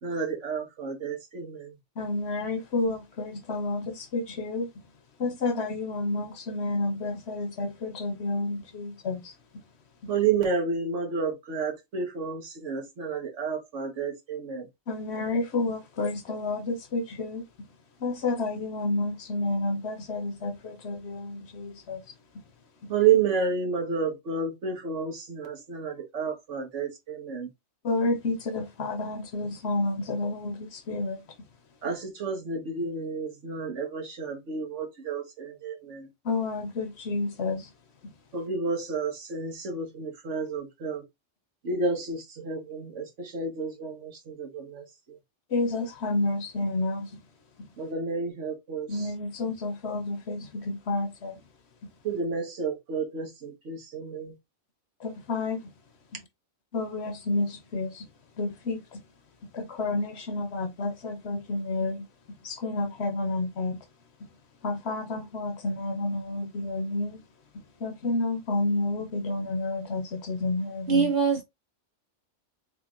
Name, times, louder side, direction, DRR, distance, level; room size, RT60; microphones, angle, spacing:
voice 1, 0.0-1.7 10.1-14.7 22.9-27.5 31.8-36.1 38.3-41.0 41.6-45.2 47.8-49.1 52.0-54.3, right 5 dB, 75° right, 1.5 m, -30 dB
voice 2, 2.0-4.7 5.2-9.3 14.9-17.4 18.0-22.0 27.8-31.2 36.2-37.7 45.5-47.1 48.9-51.3 55.0-55.6 56.7-58.0 58.4-59.0 59.5-62.0 62.4-63.8 64.6-67.2 67.8-71.1, left 2 dB, 65° left, 1.1 m, -30 dB
voice 3, 70.9-71.4, right 5 dB, 40° right, 1.6 m, -22 dB
3.7 x 3.6 x 2.4 m
omnidirectional pair, 1.2 m